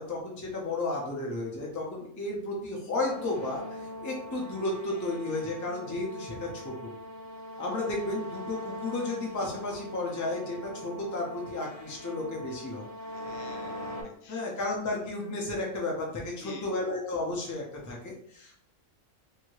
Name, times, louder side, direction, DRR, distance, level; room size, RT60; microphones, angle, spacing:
voice 1, 0.0-6.9 7.6-12.8 14.3-18.5, left 2 dB, 20° left, -2 dB, 0.5 m, -33 dB
sound 1, 3.0-14.0, left 1 dB, 55° left, 1.2 m, -41 dB
voice 2, 13.1-14.4 16.4-16.7, left 4 dB, 75° left, 3 dB, 1.0 m, -48 dB
2.7 x 2.7 x 3.1 m, 0.63 s
omnidirectional pair, 1.3 m